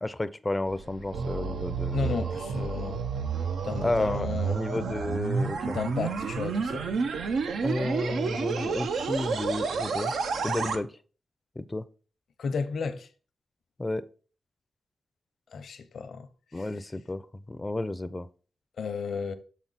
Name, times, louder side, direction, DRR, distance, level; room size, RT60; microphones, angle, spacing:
voice 1, 0.0-2.3 3.8-5.8 7.6-10.1 10.4-10.9 11.6-11.8 13.8-14.1 16.5-17.2 17.5-18.3, left 2 dB, 20° left, 0.4 m, -31 dB
sound 1, 0.7-10.8, right 5 dB, 85° right, 0.6 m, -30 dB
voice 2, 1.9-3.0 3.6-4.7 5.7-6.9 12.4-13.1 15.5-16.3 16.6-16.7 18.8-19.3, left 5 dB, 75° left, 0.7 m, -33 dB
7.3 x 4.3 x 4.0 m
cardioid pair, 80°, 0 cm